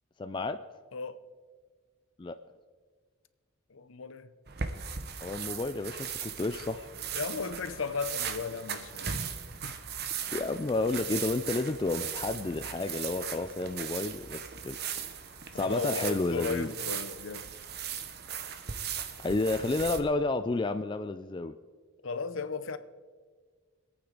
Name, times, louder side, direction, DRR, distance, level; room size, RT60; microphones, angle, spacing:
voice 1, 0.2-0.6 2.2-2.4 5.2-6.9 10.3-14.8 15.5-16.7 19.2-21.5, left 2 dB, 20° left, 0.3 m, -31 dB
voice 2, 3.7-4.3 7.1-9.3 9.6-9.8 15.5-17.5 22.0-22.8, left 4 dB, 70° left, 0.7 m, -35 dB
sound 1, 4.5-20.0, right 7 dB, 50° right, 0.9 m, -38 dB
23.5 x 8.7 x 4.0 m
head